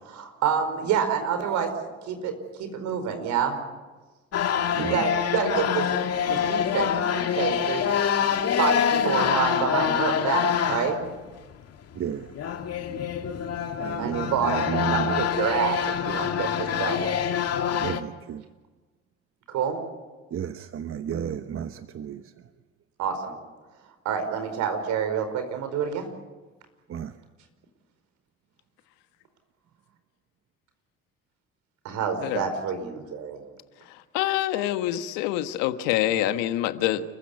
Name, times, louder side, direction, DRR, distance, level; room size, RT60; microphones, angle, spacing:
voice 1, 0.0-1.7 2.1-3.6 4.7-5.9 6.2-7.9 8.6-11.1 14.0-17.2 19.5-19.8 23.0-23.3 24.0-26.1 31.8-33.4, right 7 dB, 70° right, 8 dB, 4.9 m, -28 dB
sound 1, 4.3-11.1 11.5-11.6 11.8-18.0, left 8 dB, 55° left, 2.3 m, -26 dB
voice 2, 11.9-12.3 13.8-15.2 17.7-18.4 20.3-22.2 26.9-27.1, right 9 dB, 45° right, 9 dB, 1.1 m, -32 dB
voice 3, 33.9-37.0, left 13 dB, 80° left, 10 dB, 1.4 m, -26 dB
30.0 x 15.5 x 9.6 m, 1.3 s
hypercardioid pair, 70°, 30 cm